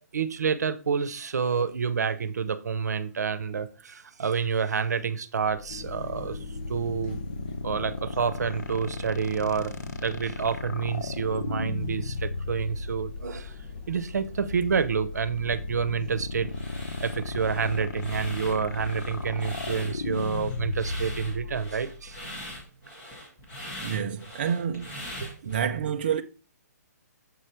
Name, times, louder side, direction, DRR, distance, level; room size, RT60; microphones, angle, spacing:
voice 1, 0.1-6.4 6.7-7.2 7.6-9.7 10.0-13.5 13.9-16.5 17.0-22.3 25.2-25.6, right 6 dB, 75° right, 0.8 m, -28 dB
sound 1, 5.6-22.6, left 3 dB, 85° left, 1.1 m, -36 dB
sound 2, 5.7-21.4, left 3 dB, 30° left, 0.7 m, -43 dB
sound 3, 16.5-25.6, equal, 15° left, 1.8 m, -42 dB
voice 2, 23.8-25.0 25.4-26.2, right 8 dB, 35° right, 0.4 m, -28 dB
7.4 x 4.9 x 4.4 m
hypercardioid pair, 175°, 9 cm